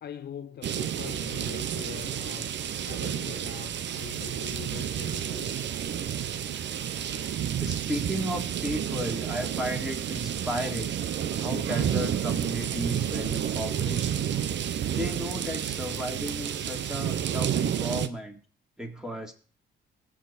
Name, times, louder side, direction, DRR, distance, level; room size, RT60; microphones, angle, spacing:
voice 1, 0.0-2.6 2.9-5.6, left 9 dB, 55° left, 0.8 m, -43 dB
sound 1, 0.6-18.1, right 9 dB, 65° right, 1.0 m, -30 dB
voice 2, 7.6-11.0 11.4-14.3 14.9-18.4 18.8-19.3, equal, ahead, 3.3 m, -34 dB
19.5 x 7.7 x 4.3 m
cardioid pair, 90°, 20 cm